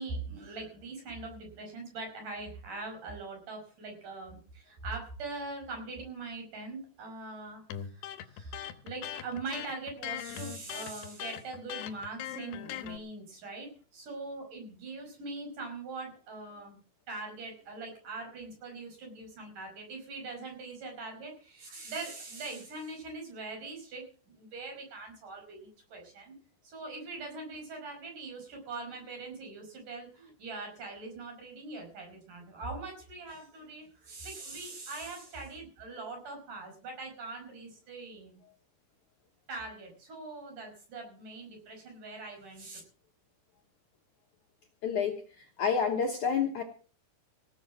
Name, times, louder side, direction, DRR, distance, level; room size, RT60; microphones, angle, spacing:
voice 1, 0.0-16.8 17.1-26.3 26.6-38.4 39.5-42.8, right 3 dB, 50° right, 2 dB, 6.7 m, -42 dB
Electric guitar, 7.7-13.0, left 11 dB, 80° left, 3.1 m, -40 dB
voice 2, 44.8-45.2 45.6-46.6, left 6 dB, 65° left, 4 dB, 2.2 m, -28 dB
17.5 x 7.7 x 7.4 m, 0.40 s
omnidirectional pair, 4.8 m